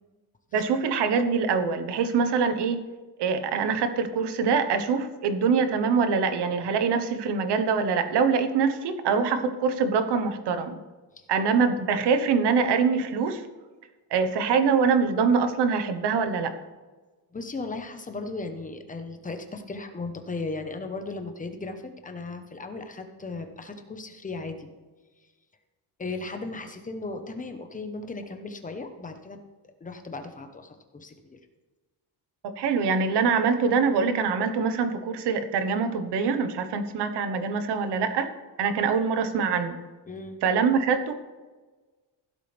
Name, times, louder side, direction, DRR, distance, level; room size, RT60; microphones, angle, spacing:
voice 1, 0.5-2.9 3.2-10.8 11.3-13.5 14.1-16.5 32.4-38.3 38.6-39.8 40.4-41.1, right 5 dB, 80° right, 9 dB, 1.3 m, -24 dB
voice 2, 17.3-24.7 26.0-29.4 29.8-31.4 40.1-40.4, left 3 dB, 20° left, 6 dB, 1.1 m, -36 dB
15.5 x 12.5 x 3.5 m, 1.3 s
cardioid pair, 160°, 40 cm